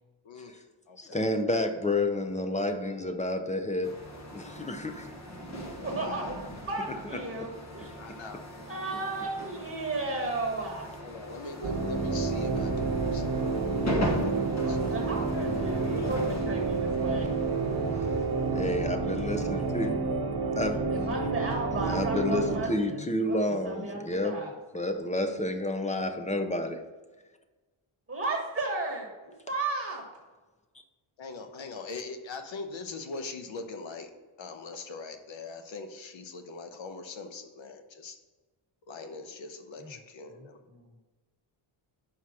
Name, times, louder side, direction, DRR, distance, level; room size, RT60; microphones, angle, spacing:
voice 1, 0.2-1.2 5.9-6.5 6.9-7.3 8.0-8.4 11.0-14.3 14.6-14.8 21.0-21.2 31.2-34.1 34.4-38.2 38.9-40.6, left 4 dB, 65° left, 6 dB, 0.9 m, -42 dB
voice 2, 1.0-3.9 4.3-5.1 18.5-19.9 20.6-20.8 21.8-24.4 24.7-26.8, left 1 dB, 15° left, 6 dB, 0.6 m, -30 dB
sound 1, 3.8-19.9, equal, 35° left, 1.2 m, -39 dB
voice 3, 5.8-7.9 8.7-10.9 14.6-17.3 20.5-24.5 28.1-30.0 39.8-39.9 40.8-40.9, right 2 dB, 25° right, -1 dB, 1.4 m, -34 dB
sound 2, 11.6-22.6, right 3 dB, 50° right, 1.1 m, -29 dB
5.6 x 4.9 x 5.7 m, 1.2 s
wide cardioid pair, 135°, 50 cm